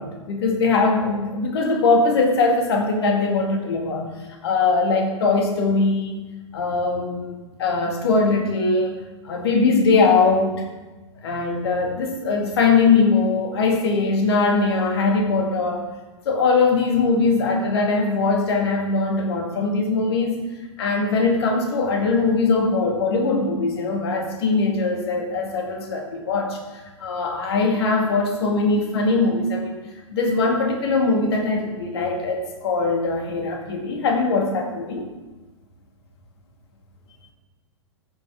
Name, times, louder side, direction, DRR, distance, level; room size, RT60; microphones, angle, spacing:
voice 1, 0.0-4.1 4.4-6.3 6.5-7.3 7.6-9.0 9.2-10.6 11.2-15.8 16.3-20.4 20.8-26.6 27.0-29.8 30.1-35.1, left 3 dB, 55° left, 2 dB, 2.1 m, -21 dB
14.5 x 7.8 x 3.6 m, 1.2 s
figure-of-eight pair, 100°, 16 cm